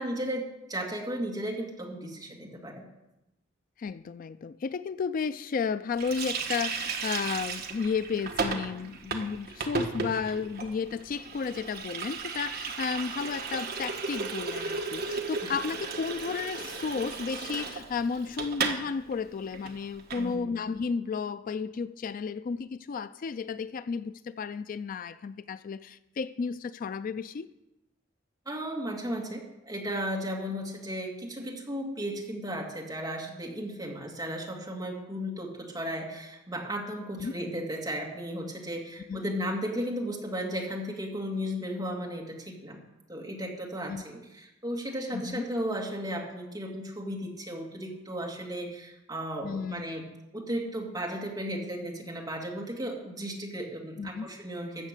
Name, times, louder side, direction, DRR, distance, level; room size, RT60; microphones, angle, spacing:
voice 1, 0.0-2.8 15.4-15.5 20.1-20.6 28.5-42.8 43.1-50.1 50.3-54.9, equal, 20° right, 2.2 m, -35 dB
voice 2, 3.8-27.5 37.2-37.3 39.1-39.3 43.9-44.0 45.1-45.4 49.4-49.8 54.0-54.3, left 5 dB, 45° left, 0.3 m, -33 dB
Water tap faucet, 6.0-18.8 19.1-19.2 19.5-20.3, right 4 dB, 55° right, 1.3 m, -35 dB
14.5 x 7.3 x 6.6 m
head